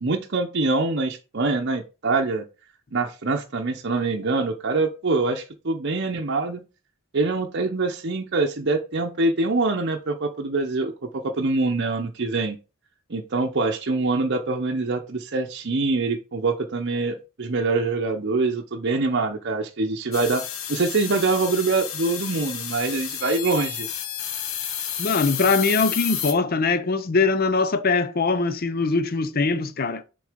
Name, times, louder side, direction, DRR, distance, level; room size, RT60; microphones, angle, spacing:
voice 1, 0.0-2.4 2.9-6.6 7.1-10.9 11.2-12.6 13.1-20.4 20.7-23.9, right 3 dB, 50° right, 0.7 m, -24 dB
sound 1, 20.1-26.3, left 9 dB, 65° left, 1.1 m, -31 dB
voice 2, 25.0-30.0, left 4 dB, 45° left, 0.6 m, -22 dB
6.6 x 3.9 x 5.1 m
head